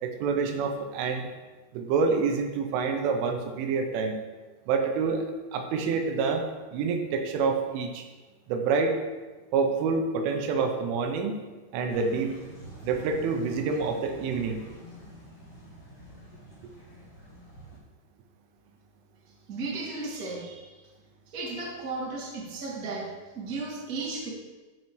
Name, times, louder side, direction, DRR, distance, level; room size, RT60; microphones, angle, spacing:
voice 1, 0.0-1.3 1.7-4.2 4.7-5.2 5.5-6.4 6.7-8.1 8.5-9.0 9.5-11.4 11.7-12.3 12.8-14.6, right 5 dB, 80° right, 4 dB, 3.1 m, -27 dB
sound 1, 11.9-17.8, equal, 25° left, 1.8 m, -47 dB
voice 2, 19.5-20.7 21.3-24.3, right 3 dB, 50° right, -7 dB, 1.0 m, -35 dB
14.5 x 5.5 x 3.1 m, 1.3 s
omnidirectional pair, 5.9 m